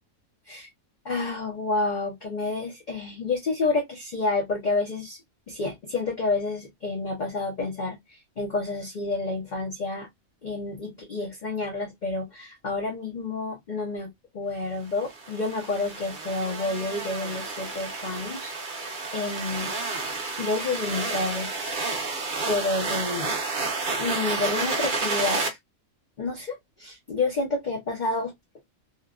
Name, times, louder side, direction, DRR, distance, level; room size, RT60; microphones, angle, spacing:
voice 1, 1.0-5.2 5.5-10.1 10.4-18.8 19.1-19.7 20.4-21.5 22.5-23.3 24.0-25.6 26.2-28.3, left 3 dB, 45° left, 0.6 m, -29 dB
sound 1, 15.0-25.5, right 3 dB, 45° right, 0.8 m, -30 dB
3.0 x 2.2 x 2.2 m
omnidirectional pair, 1.5 m